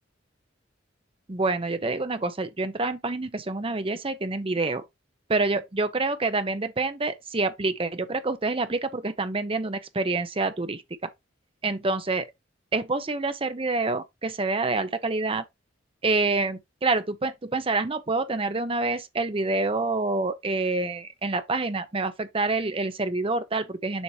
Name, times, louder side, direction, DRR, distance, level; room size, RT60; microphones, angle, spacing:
voice 1, 1.3-4.8 5.3-11.1 11.6-12.3 12.7-15.4 16.0-24.0, right 3 dB, 30° right, 0.7 m, -27 dB
7.2 x 4.7 x 2.8 m
head